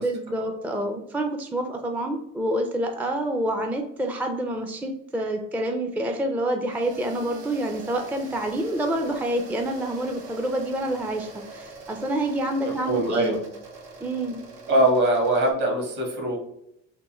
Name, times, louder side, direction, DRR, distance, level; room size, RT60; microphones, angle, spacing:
voice 1, 0.0-13.4 14.0-14.4, right 1 dB, 5° right, 4 dB, 0.4 m, -27 dB
sound 1, 6.7-15.5, right 3 dB, 85° right, 0.9 m, -43 dB
voice 2, 12.6-13.4 14.7-16.4, right 1 dB, 55° right, 1 dB, 1.5 m, -22 dB
3.6 x 2.5 x 3.0 m, 0.77 s
supercardioid pair, 70°, 35 cm